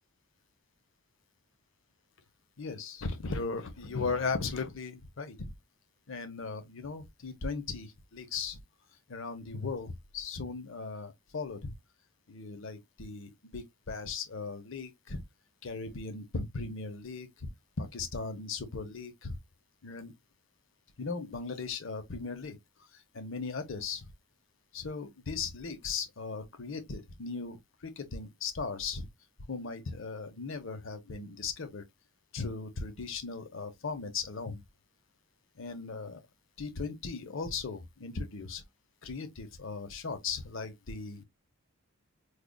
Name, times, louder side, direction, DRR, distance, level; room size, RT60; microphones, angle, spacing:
voice 1, 2.6-5.5 6.1-8.6 9.1-11.7 12.3-15.2 15.6-17.5 17.8-19.3 19.8-20.1 21.0-24.1 24.7-29.1 29.5-31.8 32.3-34.6 35.6-36.2 36.6-38.6 39.0-41.2, left 4 dB, 60° left, 0.7 m, -37 dB
4.9 x 2.4 x 2.2 m
head